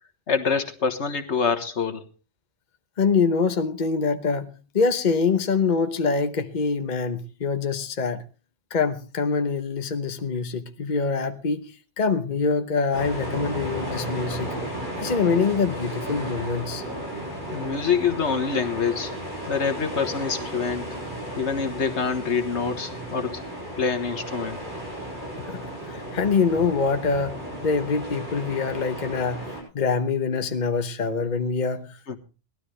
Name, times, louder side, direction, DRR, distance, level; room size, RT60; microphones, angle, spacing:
voice 1, 0.3-2.0 17.5-19.1 19.5-20.9 21.4-23.4 23.8-24.6 32.1-32.2, left 5 dB, 70° left, 1.7 m, -26 dB
voice 2, 3.0-4.5 4.7-8.2 8.7-11.7 12.0-14.5 15.0-16.8 25.4-27.4 27.6-29.4 29.7-32.0, left 5 dB, 40° left, 1.1 m, -24 dB
sound 1, 12.9-29.6, right 1 dB, 40° right, 7.6 m, -34 dB
19.0 x 12.5 x 3.2 m
omnidirectional pair, 1.2 m